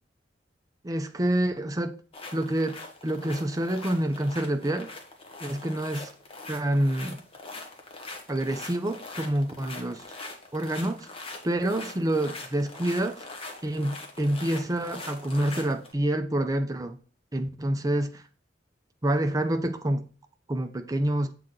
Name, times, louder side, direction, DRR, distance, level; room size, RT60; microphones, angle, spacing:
voice 1, 0.8-2.0 2.3-4.9 5.4-6.1 6.5-7.2 8.3-10.0 10.5-11.1 11.4-13.2 13.6-17.0 17.3-18.2 19.0-20.1 20.5-21.3, right 1 dB, 20° right, 0.6 m, -27 dB
sound 1, 2.1-15.9, left 2 dB, 30° left, 1.0 m, -42 dB
7.3 x 3.9 x 3.7 m
head